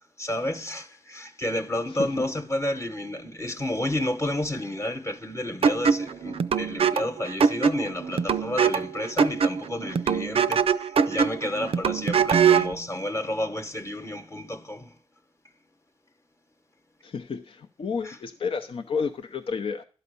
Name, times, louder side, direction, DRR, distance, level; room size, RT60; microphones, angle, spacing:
voice 1, 0.2-14.9 18.0-18.2, left 1 dB, 25° left, 1.1 m, -31 dB
sound 1, 5.6-12.8, right 6 dB, 65° right, 0.4 m, -23 dB
voice 2, 17.0-19.8, left 5 dB, 60° left, 0.6 m, -31 dB
11.5 x 4.1 x 6.8 m
cardioid pair, 80°, 11 cm